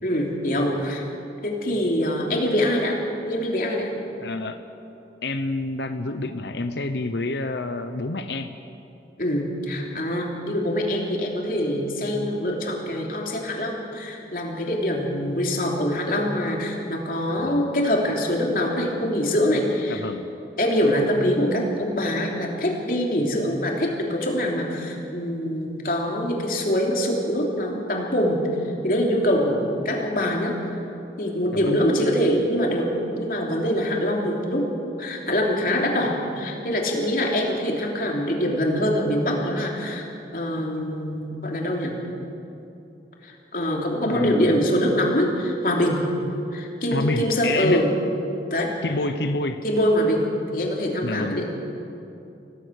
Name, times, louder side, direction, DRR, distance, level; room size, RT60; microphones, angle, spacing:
voice 1, 0.0-1.0 1.4-3.0 3.3-3.9 9.2-20.0 20.6-28.4 28.8-30.8 31.2-34.7 35.0-40.1 40.3-42.0 43.2-46.0 46.5-47.9 48.5-48.7 49.6-51.5, equal, 50° left, 0 dB, 3.2 m, -24 dB
voice 2, 4.2-4.6 5.2-8.5 17.4-17.6 19.9-20.2 31.5-31.8 44.1-44.6 46.9-47.8 48.8-49.6 51.0-51.5, left 2 dB, 80° left, 8 dB, 0.9 m, -28 dB
26.5 x 17.5 x 6.5 m, 2.8 s
head